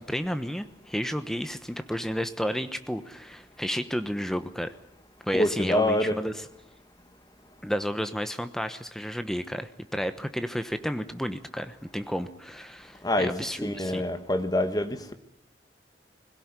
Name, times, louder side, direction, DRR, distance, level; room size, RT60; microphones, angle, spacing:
voice 1, 0.0-4.7 5.2-6.5 7.6-14.0, equal, 5° left, 1.1 m, -32 dB
voice 2, 5.3-6.2 13.0-13.3 13.6-15.1, left 1 dB, 20° left, 1.5 m, -26 dB
21.0 x 17.0 x 9.8 m
head